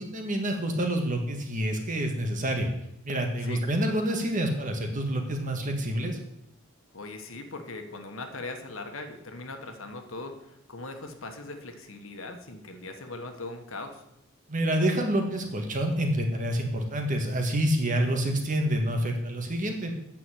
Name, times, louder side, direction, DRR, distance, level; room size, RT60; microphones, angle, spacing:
voice 1, 0.0-2.7 3.1-6.2 14.5-19.9, right 1 dB, 40° right, 3 dB, 1.7 m, -27 dB
voice 2, 6.9-14.0, left 2 dB, 70° left, 6 dB, 1.4 m, -40 dB
9.2 x 6.1 x 8.1 m, 0.81 s
head